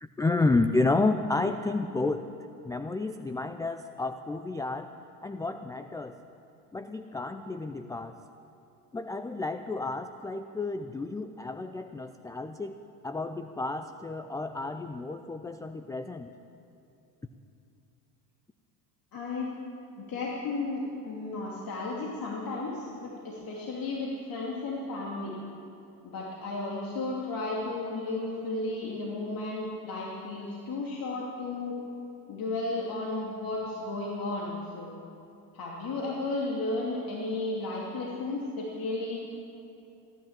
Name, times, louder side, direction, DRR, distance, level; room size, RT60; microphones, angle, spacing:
voice 1, 0.0-2.2 2.6-4.9 5.2-6.2 6.7-8.2 8.9-12.8 13.0-16.3, left 3 dB, 10° left, 8 dB, 0.4 m, -31 dB
voice 2, 19.1-19.5 20.0-25.3 26.0-31.7 32.3-35.0 35.5-39.2, left 2 dB, 45° left, -3 dB, 2.7 m, -34 dB
15.5 x 10.5 x 7.4 m, 2.8 s
hypercardioid pair, 80°, 49 cm